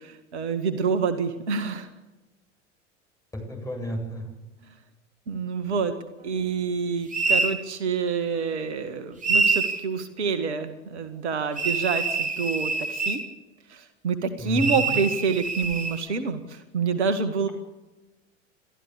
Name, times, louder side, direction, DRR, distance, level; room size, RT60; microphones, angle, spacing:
voice 1, 0.0-1.9 5.3-5.9 6.2-13.2 13.7-17.5, right 5 dB, 65° right, 9 dB, 2.0 m, -27 dB
voice 2, 3.5-4.2 14.4-14.8, right 1 dB, 10° left, 1 dB, 8.0 m, -31 dB
sound 1, 7.1-7.6 9.2-9.8 11.6-13.3 14.6-16.0, right 4 dB, 20° right, 3.0 m, -25 dB
30.0 x 14.0 x 8.4 m, 1.1 s
figure-of-eight pair, 85°, 37 cm